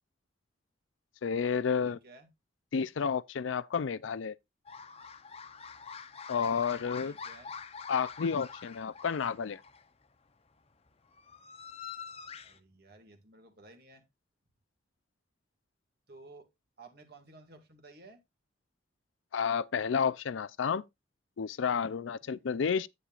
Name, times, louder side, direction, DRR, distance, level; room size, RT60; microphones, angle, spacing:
voice 1, 1.2-2.0 2.7-4.4 6.3-7.1 7.9-9.6 19.3-20.8 21.4-22.9, left 6 dB, 80° left, 0.4 m, -31 dB
voice 2, 1.9-2.3 7.0-7.6 12.4-14.0 16.1-16.5 16.8-18.2 22.2-22.5, right 2 dB, 55° right, 2.0 m, -55 dB
sound 1, 4.6-9.9 10.9-12.6, left 6 dB, 30° left, 0.7 m, -46 dB
9.8 x 9.0 x 2.4 m
head